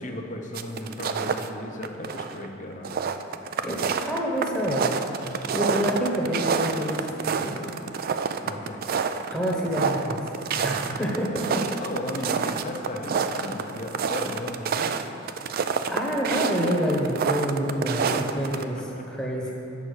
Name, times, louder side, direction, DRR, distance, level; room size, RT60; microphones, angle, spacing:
voice 1, 0.0-3.0 8.4-8.8 10.5-11.1 11.8-15.0 18.1-19.3, left 1 dB, 40° left, 2 dB, 0.8 m, -36 dB
sound 1, 0.5-1.5 1.8-2.5 2.7-18.6, right 6 dB, 50° right, 0.3 m, -28 dB
voice 2, 3.6-5.0 5.5-7.7 9.3-10.2 10.6-11.6 15.9-18.8 19.1-19.5, equal, 5° left, -3 dB, 1.1 m, -27 dB
8.5 x 5.4 x 6.4 m, 2.9 s
head